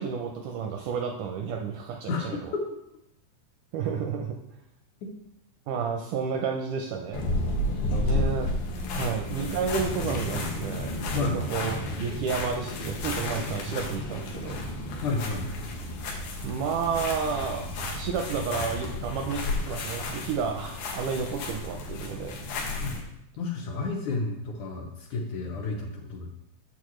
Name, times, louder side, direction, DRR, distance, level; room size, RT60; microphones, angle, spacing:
voice 1, 0.0-2.5 3.7-4.4 5.7-7.2 8.0-8.5 8.9-14.6 16.4-17.7 17.9-22.4, right 6 dB, 80° right, 3 dB, 1.8 m, -31 dB
voice 2, 2.1-2.7 5.0-5.1 7.8-8.3 9.0-9.1 10.3-10.5 11.1-11.4 15.0-15.5 22.8-23.0 23.4-26.3, left 3 dB, 70° left, 1 dB, 2.0 m, -31 dB
sound 1, 7.1-23.0, left 2 dB, 90° left, 2.9 m, -32 dB
8.5 x 7.2 x 3.1 m, 0.81 s
omnidirectional pair, 4.1 m